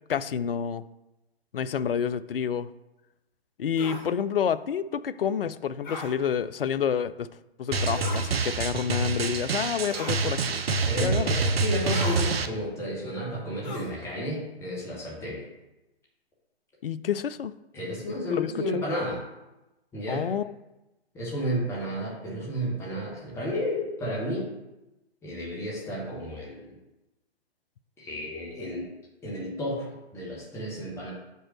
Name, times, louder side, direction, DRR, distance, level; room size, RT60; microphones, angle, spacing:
voice 1, 0.1-0.8 1.5-2.7 3.6-7.3 7.6-10.6 11.0-11.4 16.8-17.5 18.3-18.5 20.1-20.5, left 8 dB, 60° left, 15 dB, 0.5 m, -28 dB
sound 1, 3.8-4.1 5.8-6.1 7.9-8.3 9.9-10.2 11.9-12.2 13.6-14.0, left 2 dB, 45° left, 1.5 m, -37 dB
Drum, 7.7-12.5, right 3 dB, 65° right, 0.7 m, -27 dB
voice 2, 10.8-15.5 17.7-19.2 19.9-20.3 21.1-24.5 25.2-26.7 28.0-28.9 29.2-31.1, equal, 10° left, -4 dB, 1.5 m, -32 dB
5.5 x 4.3 x 6.1 m, 0.98 s
figure-of-eight pair, 130°, 32 cm